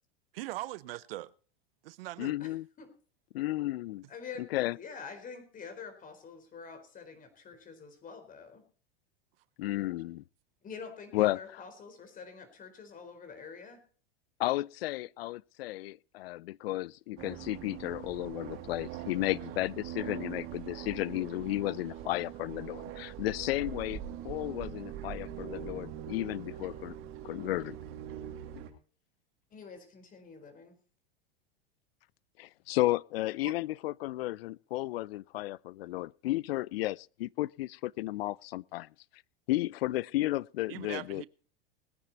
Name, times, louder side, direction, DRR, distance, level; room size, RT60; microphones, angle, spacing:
voice 1, 0.3-1.3 1.8-2.4 33.4-33.5 40.7-41.3, right 17 dB, 70° right, 0.8 m, -40 dB
voice 2, 2.2-2.6 3.3-4.1 4.4-4.8 9.6-10.2 11.1-11.6 14.4-27.0 27.2-27.8 32.4-38.9 39.5-41.2, left 17 dB, 75° left, 0.6 m, -33 dB
voice 3, 4.1-4.5 4.7-8.6 10.6-13.8 29.5-30.8, left 5 dB, 25° left, 4.4 m, -46 dB
sound 1, 17.2-28.7, right 10 dB, 45° right, 2.8 m, -42 dB
20.5 x 9.7 x 4.2 m
hypercardioid pair, 120°, 30 cm